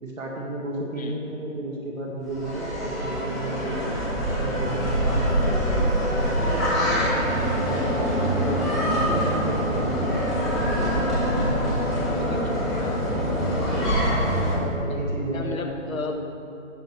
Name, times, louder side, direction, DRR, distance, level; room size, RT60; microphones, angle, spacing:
voice 1, 0.0-3.9 4.4-8.3 8.9-10.0 14.6-16.2, right 2 dB, 75° right, -2 dB, 1.8 m, -33 dB
sound 1, 2.3-14.5, equal, ahead, 0.7 m, -24 dB
voice 2, 11.8-13.3 15.3-16.2, left 4 dB, 80° left, 4 dB, 1.2 m, -35 dB
15.5 x 5.7 x 3.2 m, 2.5 s
hypercardioid pair, 180°, 40 cm